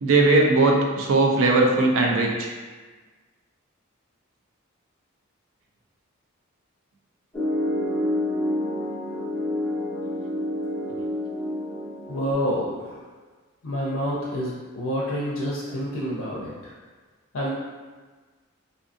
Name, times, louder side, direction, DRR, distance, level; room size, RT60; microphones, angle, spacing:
voice 1, 0.0-2.5, right 2 dB, 65° right, 1 dB, 0.4 m, -19 dB
Piano, 7.3-12.3, left 1 dB, 10° left, 0.6 m, -28 dB
voice 2, 12.1-12.9 13.6-16.5 17.3-17.5, equal, 65° left, -5 dB, 0.4 m, -28 dB
2.5 x 2.5 x 2.5 m, 1.4 s
head